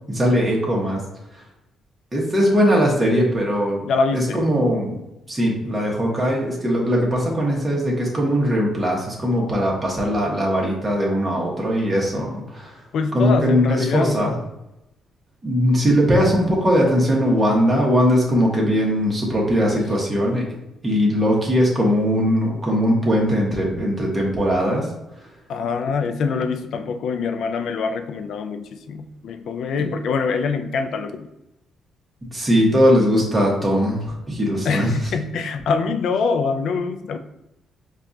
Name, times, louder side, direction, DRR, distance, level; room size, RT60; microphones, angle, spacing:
voice 1, 0.1-1.0 2.1-5.0 5.3-12.7 13.1-14.3 15.4-20.4 20.8-24.9 32.3-34.9, equal, 20° right, -3 dB, 1.2 m, -20 dB
voice 2, 3.9-4.5 12.9-14.4 25.5-31.3 34.6-37.2, left 5 dB, 70° left, 8 dB, 0.3 m, -24 dB
4.5 x 2.4 x 2.7 m, 0.91 s
cardioid pair, 90°, 0 cm